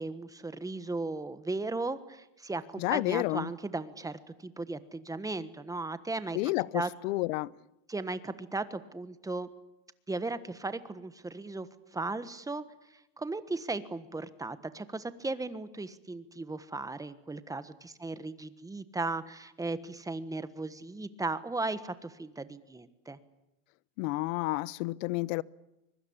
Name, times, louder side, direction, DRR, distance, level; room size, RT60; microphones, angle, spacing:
voice 1, 0.0-6.4 6.7-6.9 7.9-9.5 10.1-12.6 13.2-23.2, right 3 dB, 10° right, 13 dB, 1.4 m, -36 dB
voice 2, 2.8-3.5 6.3-7.5 24.0-25.4, left 21 dB, 85° left, 22 dB, 0.9 m, -30 dB
24.5 x 23.5 x 8.7 m, 0.92 s
cardioid pair, 145°, 38 cm